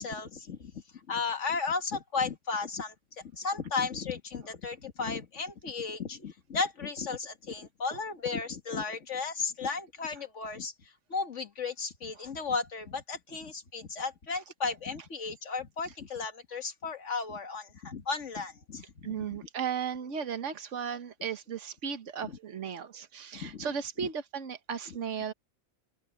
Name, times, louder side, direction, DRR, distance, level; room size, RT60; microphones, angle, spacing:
voice 1, 0.0-19.4 22.2-22.4 23.3-23.7 24.0-24.1 24.9-25.0, left 4 dB, 70° left, 2.1 m, -35 dB
voice 2, 19.0-25.3, right 7 dB, 70° right, 1.6 m, -35 dB
open air
omnidirectional pair, 1.3 m